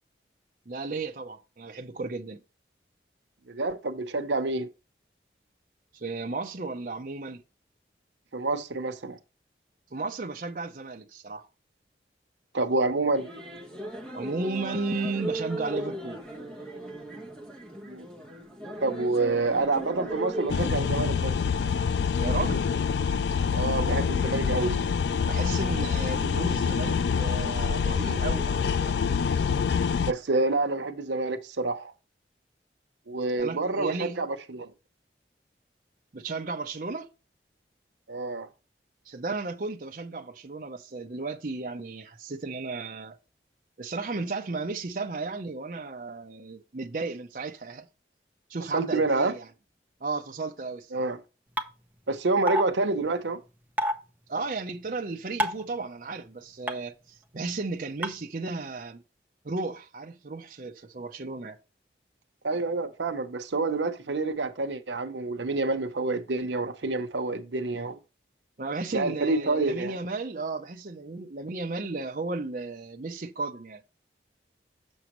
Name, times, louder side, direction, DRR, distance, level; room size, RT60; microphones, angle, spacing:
voice 1, 0.7-2.4 5.9-7.4 9.9-11.5 14.1-16.3 22.2-22.6 25.2-29.0 33.4-34.2 36.1-37.1 39.1-43.2 43.8-47.9 48.5-49.5 50.0-51.1 54.3-59.0 59.4-61.6 68.6-73.8, right 3 dB, 50° right, 0.6 m, -34 dB
voice 2, 3.5-4.7 8.3-9.2 12.5-13.3 17.9-18.0 18.8-21.4 23.5-24.8 30.0-31.9 33.1-34.7 38.1-38.5 48.7-49.3 50.9-51.2 52.1-53.4 62.4-68.0 68.9-69.9, right 3 dB, 90° right, 0.8 m, -28 dB
sound 1, 13.1-20.5, right 1 dB, 5° left, 1.2 m, -37 dB
sound 2, 20.5-30.1, left 6 dB, 75° left, 0.4 m, -26 dB
sound 3, 51.6-51.7 52.5-52.6 53.8-53.9 55.4-55.6 56.7-56.8 58.0-58.1, equal, 10° right, 0.6 m, -25 dB
7.0 x 6.3 x 3.0 m
head